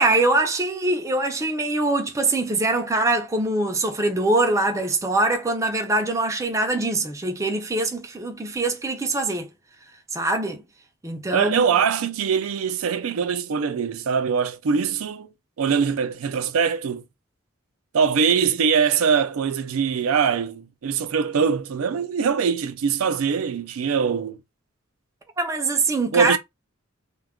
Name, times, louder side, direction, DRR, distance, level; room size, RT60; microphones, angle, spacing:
voice 1, 0.0-9.5 10.1-10.6 11.0-11.7 25.4-26.4, right 2 dB, 15° right, 0.4 m, -23 dB
voice 2, 11.3-15.3 15.6-17.0 17.9-24.4 26.1-26.4, right 6 dB, 85° right, 0.4 m, -22 dB
2.2 x 2.2 x 3.5 m
head